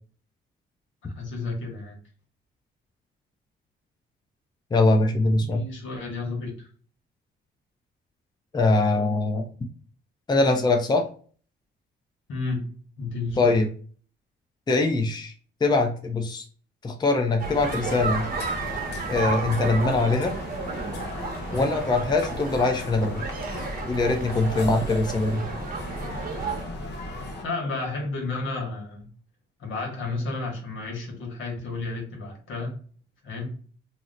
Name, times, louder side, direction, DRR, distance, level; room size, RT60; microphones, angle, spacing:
voice 1, 1.2-2.0 5.3-6.7 12.3-12.7 13.0-13.6 27.4-29.1 29.6-32.8 33.2-33.5, left 3 dB, 75° left, 1 dB, 1.2 m, -32 dB
voice 2, 4.7-5.6 8.5-9.4 10.3-11.0 13.4-13.7 14.7-15.3 15.6-16.4 16.8-18.3 19.1-20.3 21.5-23.2 23.9-25.4, left 2 dB, 20° left, 3 dB, 0.6 m, -22 dB
sound 1, 17.4-27.5, left 2 dB, 60° left, 0.9 m, -36 dB
sound 2, 17.4-26.6, right 4 dB, 50° right, 0.8 m, -33 dB
2.8 x 2.0 x 3.7 m, 0.43 s
cardioid pair, 90°, 20 cm